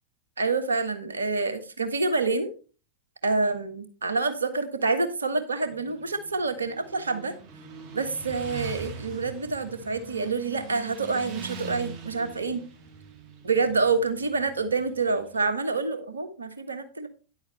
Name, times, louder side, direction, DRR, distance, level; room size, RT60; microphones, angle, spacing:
voice 1, 0.4-2.5 3.2-7.3 7.9-12.6 13.4-17.1, right 3 dB, 75° right, 10 dB, 1.4 m, -27 dB
Motorcycle, 5.6-15.4, right 5 dB, 40° right, 1.6 m, -42 dB
10.5 x 8.0 x 3.2 m, 0.34 s
figure-of-eight pair, 90°, 0 cm